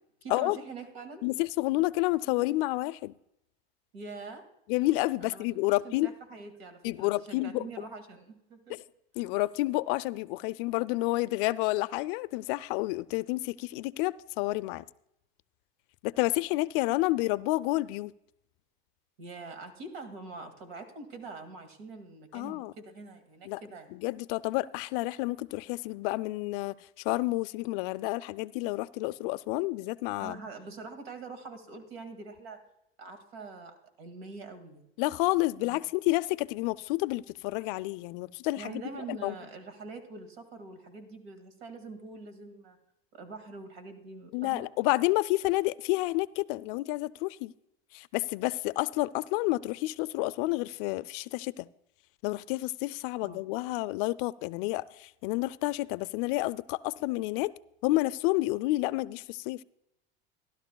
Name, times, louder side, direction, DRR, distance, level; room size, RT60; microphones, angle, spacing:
voice 1, 0.2-1.2 3.9-4.4 5.2-8.8 19.2-24.0 30.2-32.6 33.0-34.9 35.6-35.8 38.6-42.8 43.1-44.7 53.2-53.5, right 3 dB, 80° right, 2.1 m, -44 dB
voice 2, 1.2-3.1 4.7-6.1 6.8-7.7 8.7-8.8 9.2-14.8 16.0-18.1 22.3-22.7 23.5-23.6 23.9-26.8 27.0-30.4 35.0-38.8 39.1-39.4 44.3-47.5 47.9-51.7 52.2-57.5 57.8-59.6, left 20 dB, 60° left, 0.4 m, -30 dB
16.0 x 12.0 x 2.3 m
supercardioid pair, 120°, 30 cm